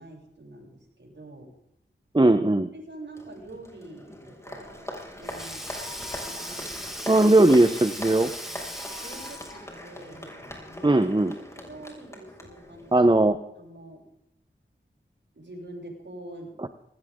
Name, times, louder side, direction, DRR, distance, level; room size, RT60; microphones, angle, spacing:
voice 1, 0.0-1.5 2.7-7.1 8.9-10.3 11.5-12.9 13.5-14.1 15.3-16.5, right 1 dB, 65° right, -1 dB, 8.0 m, -45 dB
voice 2, 2.1-2.7 7.1-8.3 10.8-11.3 12.9-13.4 16.6-16.7, right 2 dB, 25° right, 10 dB, 1.1 m, -19 dB
Applause, 3.1-13.2, left 1 dB, 15° left, 6.4 m, -41 dB
Sink (filling or washing), 4.6-9.7, equal, ahead, 5.1 m, -38 dB
20.0 x 18.0 x 3.9 m, 0.79 s
wide cardioid pair, 45°, 20 cm